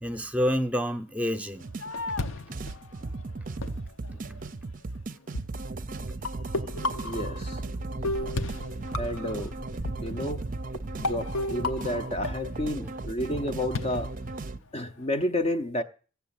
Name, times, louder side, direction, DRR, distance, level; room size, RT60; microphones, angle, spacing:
voice 1, 0.0-1.7 3.0-3.1 4.1-4.3 12.8-13.0 13.3-13.4, equal, 5° right, 0.8 m, -29 dB
Fireworks, 1.3-4.8 5.4-5.5 6.0-6.4 6.8-11.7 13.7-15.1, left 3 dB, 60° left, 0.8 m, -39 dB
sound 1, 1.6-14.6, right 2 dB, 40° right, 0.6 m, -36 dB
sound 2, 5.3-5.4 6.2-7.8 8.0-9.4 9.8-9.9 10.7-10.8 11.0-12.7, left 2 dB, 80° left, 1.3 m, -32 dB
voice 2, 7.0-7.6 9.0-9.5 10.0-10.5 11.0-14.1 14.7-15.8, left 1 dB, 30° left, 0.7 m, -31 dB
15.0 x 7.2 x 8.8 m
head